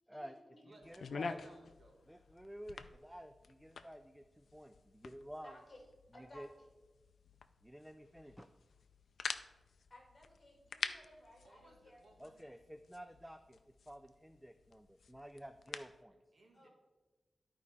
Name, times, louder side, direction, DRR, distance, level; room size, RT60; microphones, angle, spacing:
voice 1, 0.1-0.7 5.4-5.8 6.1-6.7 9.9-12.0 16.5-16.7, left 1 dB, 30° left, -1 dB, 2.4 m, -59 dB
voice 2, 0.6-1.4 2.1-5.6 6.2-6.5 7.6-8.5 12.2-13.6 13.9-16.2, equal, 5° right, 9 dB, 0.3 m, -51 dB
sound 1, 0.8-16.0, left 5 dB, 80° left, 0.4 m, -49 dB
voice 3, 1.2-2.0 11.4-12.5 16.1-16.7, right 2 dB, 55° right, 1 dB, 1.6 m, -63 dB
12.5 x 4.8 x 4.2 m, 1.2 s
wide cardioid pair, 130°, 0 cm